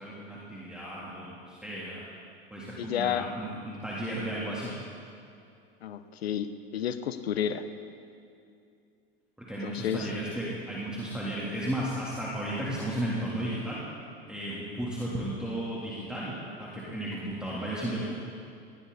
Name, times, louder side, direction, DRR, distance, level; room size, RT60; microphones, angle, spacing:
voice 1, 0.0-2.0 2.5-4.8 9.5-13.8 14.3-16.3 16.6-18.1, right 1 dB, 5° right, -7 dB, 3.4 m, -34 dB
voice 2, 2.8-3.3 5.8-7.6 9.6-10.1, left 9 dB, 85° left, 11 dB, 1.0 m, -31 dB
20.0 x 16.0 x 4.2 m, 2.6 s
hypercardioid pair, 95°, 30 cm